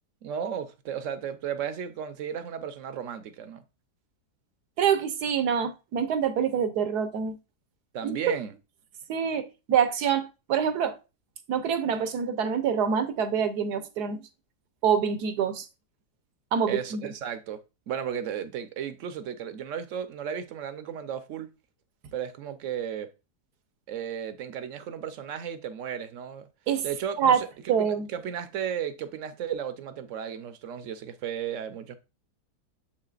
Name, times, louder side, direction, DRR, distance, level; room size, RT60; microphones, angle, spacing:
voice 1, 0.2-3.6 7.9-8.6 11.8-11.9 16.7-21.5 22.1-23.1 23.9-26.5 26.8-32.0, right 8 dB, 60° right, 1.0 m, -34 dB
voice 2, 4.8-7.4 8.0-8.1 9.1-11.0 11.5-14.3 14.8-15.7 16.5-17.1 26.7-26.9 27.2-27.4 27.7-28.1, right 7 dB, 75° right, 1.4 m, -26 dB
7.2 x 5.7 x 2.4 m
omnidirectional pair, 1.7 m